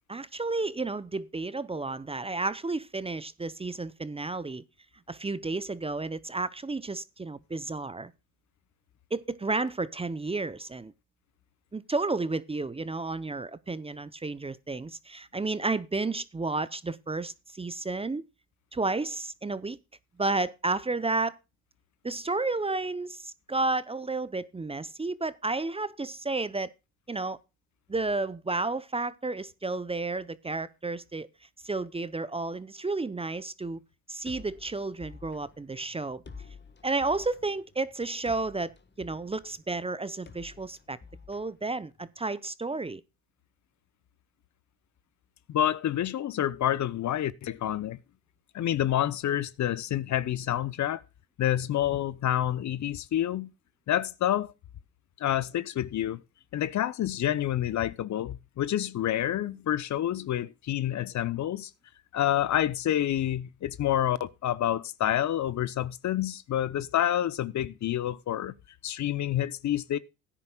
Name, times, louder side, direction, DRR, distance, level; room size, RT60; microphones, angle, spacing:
voice 1, 0.1-4.6 5.1-8.1 9.1-10.9 11.7-18.3 18.7-19.8 20.2-21.4 22.0-26.7 27.1-27.4 27.9-31.3 31.6-33.8 34.1-36.2 36.8-38.7 39.0-41.0 41.3-43.0, right 3 dB, 15° right, 0.7 m, -32 dB
sound 1, 34.2-42.2, left 4 dB, 30° left, 1.5 m, -51 dB
voice 2, 45.5-48.0 48.5-51.0 51.4-53.5 53.9-54.5 55.2-56.2 56.5-61.7 62.1-68.5 68.8-70.0, left 11 dB, 50° left, 0.8 m, -28 dB
16.0 x 10.0 x 2.3 m
supercardioid pair, 70°, 36 cm